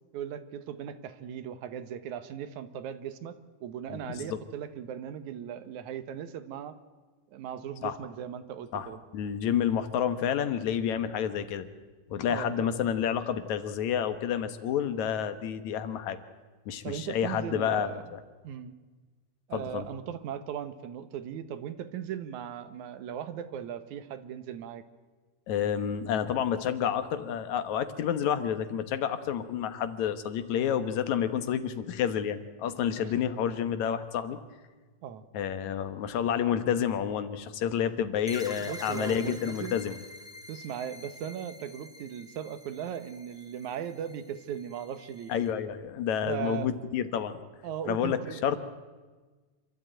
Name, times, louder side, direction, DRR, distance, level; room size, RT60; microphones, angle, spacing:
voice 1, 0.1-6.8 7.3-9.0 12.3-12.7 16.8-18.0 18.4-18.8 19.5-24.8 33.0-33.1 35.0-35.2 38.6-39.8 40.5-45.3 46.2-46.7 47.6-48.5, right 9 dB, 80° right, 11 dB, 2.5 m, -38 dB
voice 2, 3.9-4.4 7.8-8.0 8.7-11.7 12.1-16.2 16.7-18.2 19.5-19.9 25.5-34.4 35.3-40.0 45.3-47.4 47.9-48.6, left 8 dB, 75° left, 10 dB, 2.5 m, -29 dB
sound 1, 38.3-45.5, left 1 dB, 5° right, 0.7 m, -47 dB
26.5 x 13.0 x 9.0 m, 1.3 s
omnidirectional pair, 3.3 m